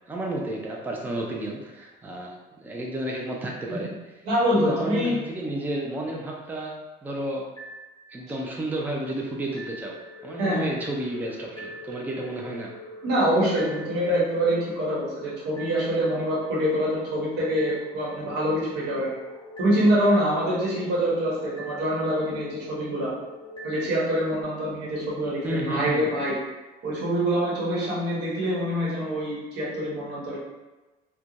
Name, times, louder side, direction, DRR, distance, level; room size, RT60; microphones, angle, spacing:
voice 1, 0.1-3.9 4.5-6.7 7.0-7.4 8.1-10.0 10.2-12.7 25.4-26.1, right 1 dB, 10° right, -1 dB, 0.4 m, -31 dB
voice 2, 4.2-5.1 10.4-10.7 13.0-19.1 19.6-23.1 23.6-26.3 26.8-30.4, equal, 90° right, -6 dB, 1.1 m, -25 dB
sound 1, 7.6-8.5 9.6-24.4, equal, 30° left, 0.9 m, -42 dB
3.0 x 2.2 x 2.5 m, 1.1 s
cardioid pair, 110°, 17 cm